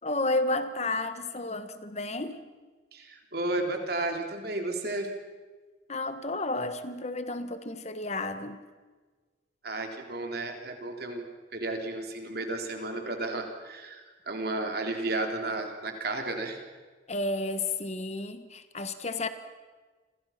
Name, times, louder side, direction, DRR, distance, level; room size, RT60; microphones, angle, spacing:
voice 1, 0.0-2.4 5.9-8.6 17.1-19.3, left 2 dB, 35° left, 10 dB, 1.4 m, -31 dB
voice 2, 2.9-5.1 9.6-16.6, right 2 dB, 55° right, 3 dB, 3.6 m, -33 dB
29.5 x 26.0 x 5.9 m, 1.3 s
head